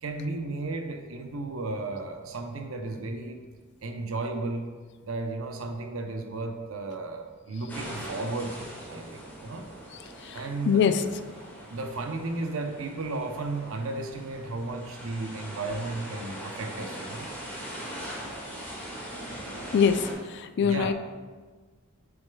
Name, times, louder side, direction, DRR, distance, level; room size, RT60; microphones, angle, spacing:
voice 1, 0.0-3.4 3.8-4.7 5.0-9.7 10.3-10.8 11.7-17.3 20.6-20.9, right 3 dB, 70° right, 5 dB, 0.7 m, -34 dB
sound 1, 7.7-20.1, right 1 dB, 10° left, 1.7 m, -41 dB
voice 2, 10.7-11.0 18.2-18.3 19.7-20.9, left 7 dB, 55° left, 10 dB, 0.3 m, -24 dB
7.0 x 6.5 x 2.3 m, 1.4 s
head